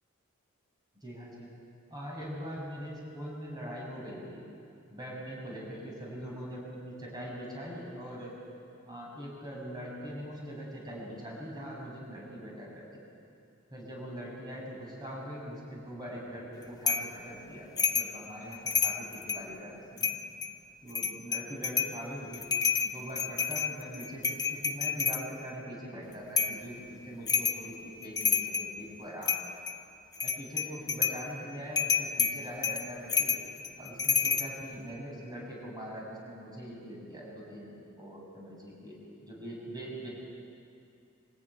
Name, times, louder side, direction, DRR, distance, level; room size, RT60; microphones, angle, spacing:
voice 1, 1.0-1.5 1.9-4.5 4.9-8.3 8.8-13.0 13.7-20.1 20.8-22.4 22.8-29.5 30.2-33.4 33.8-38.9 39.2-40.1, equal, 20° right, -3 dB, 6.9 m, -42 dB
sound 1, 16.9-17.1 17.8-18.1 18.5-19.5 20.0-20.5 20.9-22.0 22.3-25.2 26.4-26.6 27.3-27.6 28.0-28.7 29.2-29.8 30.1-31.2 31.8-34.5, left 6 dB, 20° left, 0.9 m, -29 dB
24.5 x 15.0 x 9.9 m, 2.5 s
head